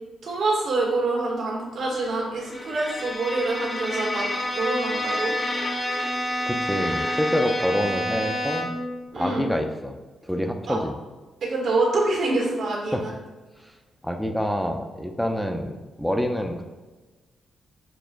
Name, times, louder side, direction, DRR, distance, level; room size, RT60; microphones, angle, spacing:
voice 1, 0.2-4.3 4.6-5.3 9.1-9.5 10.7-10.8 11.4-13.1, right 2 dB, 75° right, -3 dB, 1.1 m, -26 dB
Bowed string instrument, 2.5-8.9, left 1 dB, 30° left, 0.8 m, -28 dB
voice 2, 6.5-8.7 9.2-10.0 10.2-11.0 12.9-13.1 14.0-16.6, equal, 5° left, 4 dB, 0.4 m, -26 dB
6.1 x 2.4 x 2.4 m, 1.2 s
cardioid pair, 65°, 0 cm